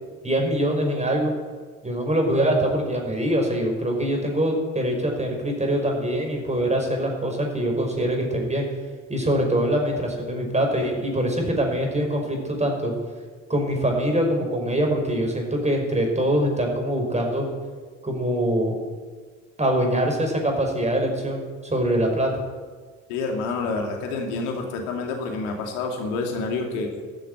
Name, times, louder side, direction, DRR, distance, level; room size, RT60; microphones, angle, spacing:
voice 1, 0.2-1.3 1.8-8.7 9.1-12.9 13.5-17.5 18.0-18.8 19.6-22.3, right 1 dB, 15° right, 1 dB, 5.8 m, -23 dB
voice 2, 23.1-26.9, left 3 dB, 75° left, 3 dB, 2.7 m, -28 dB
14.0 x 9.1 x 9.8 m, 1.5 s
hypercardioid pair, 55°, 38 cm